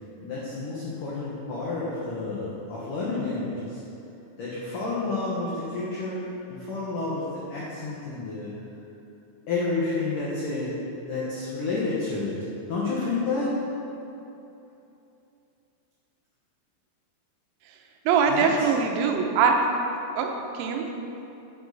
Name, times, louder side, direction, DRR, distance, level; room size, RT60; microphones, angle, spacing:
voice 1, 0.2-3.8 4.4-6.2 6.5-8.5 9.5-10.7 11.1-12.4 12.7-13.5 18.3-18.7, left 3 dB, 90° left, -7 dB, 1.8 m, -30 dB
voice 2, 18.1-19.6 20.2-20.3 20.6-20.9, right 6 dB, 90° right, 3 dB, 3.6 m, -22 dB
11.0 x 8.0 x 4.0 m, 2.9 s
omnidirectional pair, 5.9 m